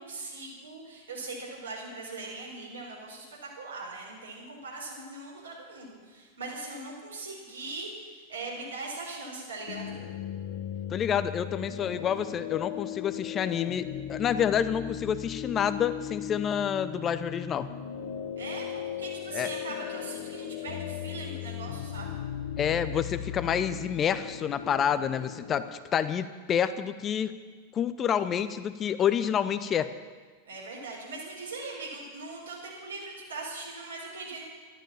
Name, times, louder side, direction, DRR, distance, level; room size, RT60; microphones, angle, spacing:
voice 1, 0.0-3.3 3.5-9.9 18.4-22.1 30.4-34.4, right 3 dB, 70° right, -2 dB, 4.7 m, -40 dB
sound 1, 9.7-25.7, left 10 dB, 50° left, 1.3 m, -37 dB
voice 2, 10.9-17.7 19.3-19.5 22.6-27.3 27.7-29.9, left 8 dB, 25° left, 13 dB, 0.6 m, -28 dB
13.0 x 11.5 x 7.2 m, 1.5 s
figure-of-eight pair, 90°, 0 cm